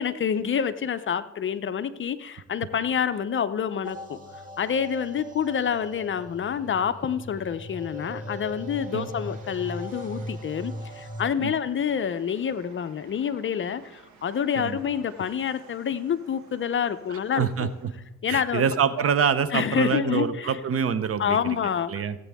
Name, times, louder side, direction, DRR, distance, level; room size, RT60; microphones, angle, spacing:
voice 1, 0.0-17.7 18.2-18.6 19.5-20.6 21.2-21.9, left 8 dB, 40° left, 12 dB, 0.6 m, -27 dB
sound 1, 3.8-11.2, equal, 25° right, 2.2 m, -39 dB
Train, 7.6-18.1, right 6 dB, 75° right, 1.6 m, -55 dB
voice 2, 17.1-17.7 18.3-21.6 21.9-22.2, right 7 dB, 50° right, 14 dB, 0.8 m, -26 dB
17.0 x 8.3 x 3.6 m, 1.0 s
cardioid pair, 90°, 30 cm